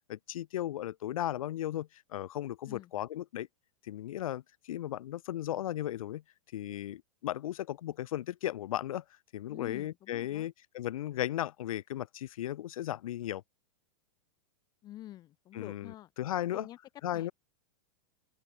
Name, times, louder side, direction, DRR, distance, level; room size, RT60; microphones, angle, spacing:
voice 1, 0.1-3.5 3.8-6.2 6.5-9.0 9.3-13.4 15.5-15.9 16.2-16.7 17.0-17.3, left 12 dB, 85° left, 0.5 m, -36 dB
voice 2, 9.5-10.5 14.8-16.8 17.1-17.3, left 14 dB, 25° left, 1.3 m, -48 dB
open air
supercardioid pair, 160°, 17 cm